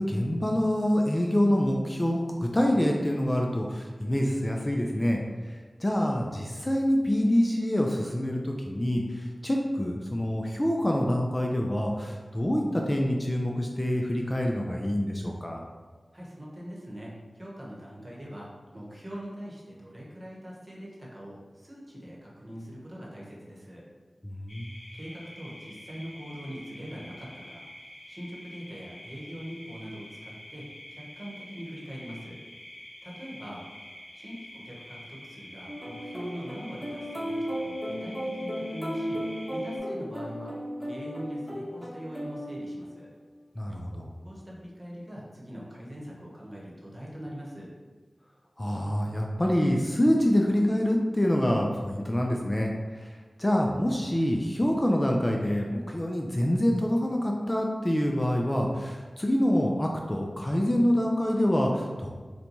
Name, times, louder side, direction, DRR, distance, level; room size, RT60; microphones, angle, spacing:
voice 1, 0.0-5.2 5.5-15.6 24.2-24.7 43.6-44.1 48.6-53.1 53.4-62.1, equal, 20° left, 0 dB, 0.3 m, -26 dB
voice 2, 16.1-18.5 18.7-23.8 24.9-27.6 28.1-30.7 30.9-32.4 33.0-33.6 34.1-39.2 39.5-40.5 40.8-43.1 44.2-47.7, equal, 30° right, -5 dB, 1.0 m, -42 dB
sound 1, 24.5-39.8, left 1 dB, 65° left, 0.7 m, -47 dB
sound 2, 35.7-43.1, equal, ahead, 1.1 m, -35 dB
3.9 x 2.2 x 2.9 m, 1.5 s
wide cardioid pair, 55°, 0 cm